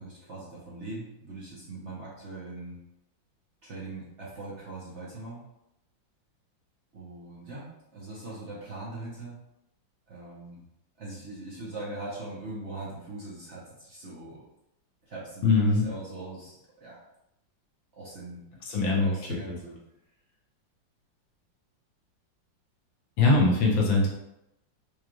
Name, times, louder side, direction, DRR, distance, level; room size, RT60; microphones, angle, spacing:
voice 1, 0.0-2.8 3.6-5.5 6.9-9.4 10.1-10.7 11.0-14.4 15.0-17.0 18.0-18.4 18.8-19.8, right 2 dB, 50° right, -7 dB, 0.9 m, -41 dB
voice 2, 15.4-15.8 18.7-19.1 23.2-24.1, left 3 dB, 85° left, -3 dB, 1.7 m, -21 dB
5.0 x 2.3 x 3.0 m, 0.86 s
omnidirectional pair, 2.1 m